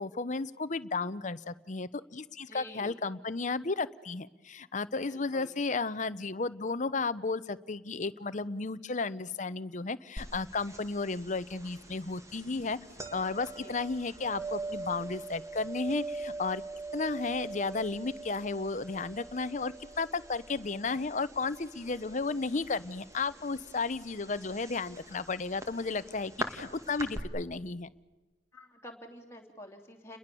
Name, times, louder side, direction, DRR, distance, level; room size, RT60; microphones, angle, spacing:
voice 1, 0.0-12.8 13.1-16.6 16.9-27.9, left 3 dB, 40° left, 14 dB, 0.8 m, -33 dB
voice 2, 2.5-3.0 5.1-5.5 13.6-13.7 28.5-30.2, left 1 dB, 15° left, 2 dB, 3.2 m, -48 dB
sound 1, 10.2-27.2, right 2 dB, 15° right, 2.1 m, -43 dB
30.0 x 21.5 x 7.0 m, 1.2 s
head